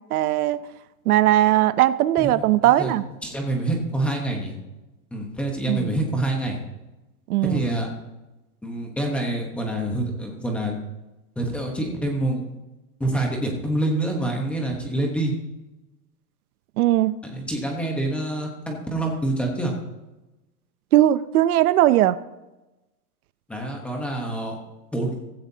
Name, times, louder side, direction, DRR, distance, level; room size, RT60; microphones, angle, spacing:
voice 1, 0.1-0.6 1.1-3.0 5.7-5.9 7.3-7.6 16.8-17.1 20.9-22.2, right 14 dB, 70° right, 15 dB, 0.6 m, -19 dB
voice 2, 2.2-2.9 3.2-4.5 5.1-6.6 7.4-7.9 8.6-10.8 11.4-12.5 13.0-15.3 17.2-19.7 23.5-24.6 24.9-25.1, right 1 dB, 5° left, 0 dB, 1.0 m, -26 dB
15.5 x 14.5 x 2.8 m, 1.0 s
supercardioid pair, 175°, 46 cm